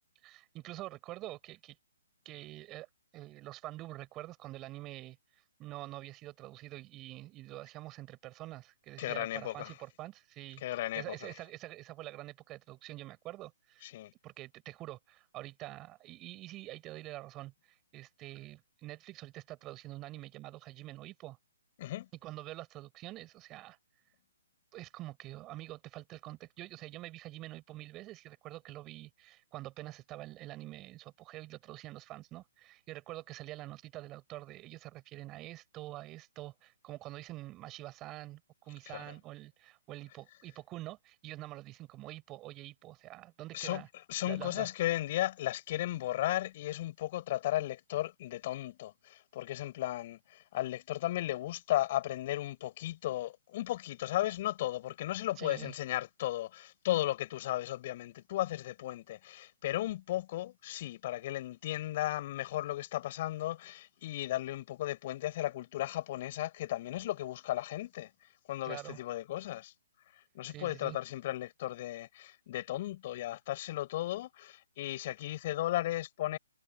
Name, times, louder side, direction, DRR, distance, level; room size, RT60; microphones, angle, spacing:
voice 1, 0.2-1.8 2.2-2.9 3.1-5.2 5.6-13.9 14.2-21.4 22.2-23.8 24.7-43.9 44.2-44.7 55.4-55.7 68.6-69.0 70.5-71.0, right 17 dB, 25° right, 4.7 m, -46 dB
voice 2, 9.0-9.7 10.6-11.3 13.8-14.1 21.8-22.1 38.9-39.1 43.5-43.8 44.1-68.1 68.5-69.7 70.3-76.4, left 15 dB, 40° left, 5.4 m, -35 dB
figure-of-eight pair, 135°, 0 cm